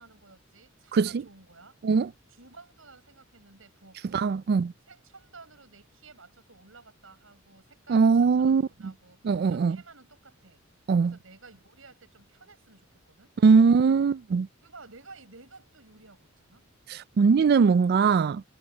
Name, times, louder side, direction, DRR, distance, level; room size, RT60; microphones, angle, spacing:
voice 1, 0.0-1.8 2.3-4.4 4.9-10.6 11.0-13.3 14.6-16.7, right 3 dB, 75° right, 6.6 m, -53 dB
voice 2, 4.1-4.7 7.9-8.6 9.2-9.8 10.9-11.1 13.4-14.5 16.9-18.4, right 5 dB, 50° right, 0.3 m, -21 dB
head